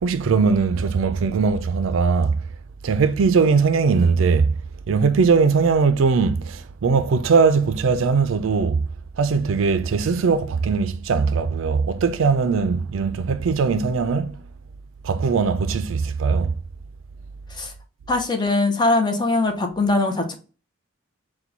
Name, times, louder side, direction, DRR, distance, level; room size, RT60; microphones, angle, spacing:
voice 1, 0.0-2.4 2.8-4.5 4.9-8.8 9.2-14.4 15.0-16.5, right 5 dB, 80° right, 0.4 m, -20 dB
voice 2, 18.1-20.3, left 2 dB, 20° left, 0.7 m, -21 dB
4.4 x 2.2 x 3.9 m
head